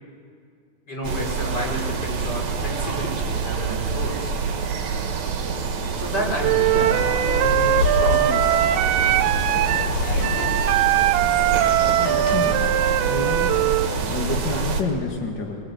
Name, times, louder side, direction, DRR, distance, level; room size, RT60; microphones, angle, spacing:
voice 1, 0.9-4.4 6.0-8.4 8.7-9.4 10.3-10.6, equal, 25° left, -1 dB, 5.3 m, -31 dB
sound 1, 1.0-14.8, right 5 dB, 50° right, 2.8 m, -26 dB
Wind instrument woodwind instrument, 6.4-13.9, right 13 dB, 80° right, 2.6 m, -21 dB
sound 2, 6.9-14.0, left 6 dB, 65° left, 2.5 m, -30 dB
voice 2, 11.9-12.8 13.1-13.6 14.1-15.7, left 4 dB, 45° left, 1 dB, 1.5 m, -29 dB
23.5 x 23.0 x 9.6 m, 2.3 s
omnidirectional pair, 4.7 m